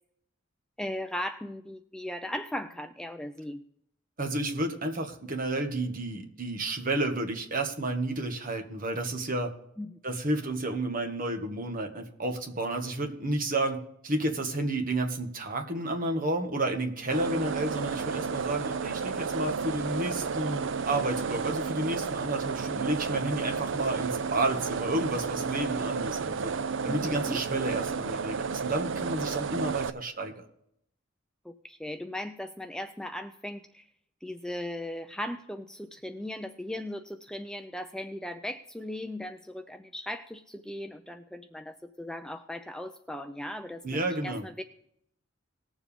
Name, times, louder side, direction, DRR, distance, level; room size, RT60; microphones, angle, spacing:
voice 1, 0.8-3.6 9.8-9.9 26.8-27.4 31.4-33.8 34.2-44.6, left 1 dB, 5° left, 7 dB, 0.4 m, -38 dB
voice 2, 4.2-9.5 10.0-26.5 26.8-30.4 43.8-44.4, right 2 dB, 40° right, 3 dB, 1.6 m, -31 dB
sound 1, 17.1-29.9, right 5 dB, 60° right, 0.5 m, -32 dB
19.5 x 7.2 x 3.5 m, 0.74 s
head